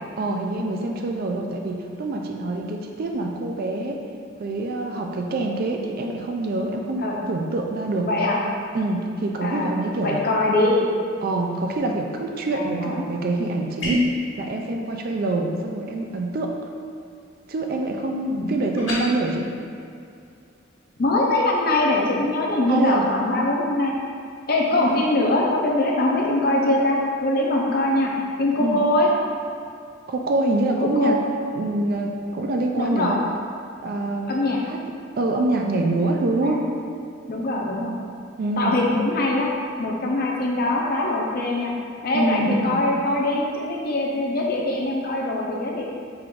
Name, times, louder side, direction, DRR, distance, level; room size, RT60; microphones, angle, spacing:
voice 1, 0.2-4.0 4.4-8.1 8.7-10.2 11.2-16.5 17.5-19.5 22.7-23.0 24.8-25.1 28.6-28.8 30.1-31.2 31.5-33.1 33.8-34.3 34.7-34.8 35.2-36.6 38.4-38.8 42.1-42.8, right 2 dB, 50° right, 2 dB, 0.4 m, -25 dB
voice 2, 8.0-8.4 9.4-9.7 10.0-10.9 12.5-13.0 18.3-18.5 21.0-24.0 24.5-28.1 28.4-29.1 30.8-31.3 32.8-33.2 34.3-34.6 36.4-36.6 37.3-37.9 38.6-39.5 39.8-41.7 42.0-45.8, left 2 dB, 50° left, -2 dB, 0.6 m, -22 dB
sound 1, 13.8-14.2 18.8-19.0, left 1 dB, 70° left, 1.4 m, -23 dB
4.7 x 2.5 x 3.6 m, 2.4 s
head